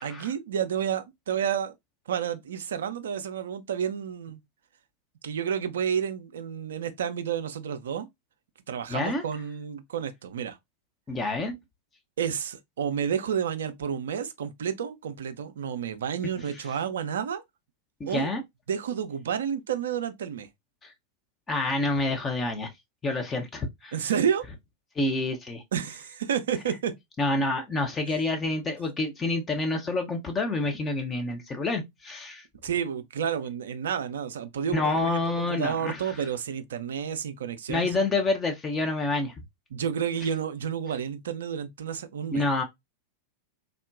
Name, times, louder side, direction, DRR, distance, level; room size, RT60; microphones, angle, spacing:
voice 1, 0.0-1.7 2.1-4.4 5.2-8.1 8.7-10.6 12.2-17.4 18.1-18.3 18.7-20.5 23.9-24.5 25.7-27.0 32.6-35.1 35.4-37.9 39.7-42.4, right 8 dB, 65° right, 0.4 m, -30 dB
voice 2, 8.9-9.2 11.1-11.5 18.0-18.4 20.8-20.9 21.5-22.7 23.0-23.9 25.0-25.6 27.2-32.4 34.7-36.0 37.7-39.3 42.3-42.6, left 2 dB, 20° left, 0.5 m, -28 dB
3.5 x 2.1 x 2.4 m
figure-of-eight pair, 90°, 0 cm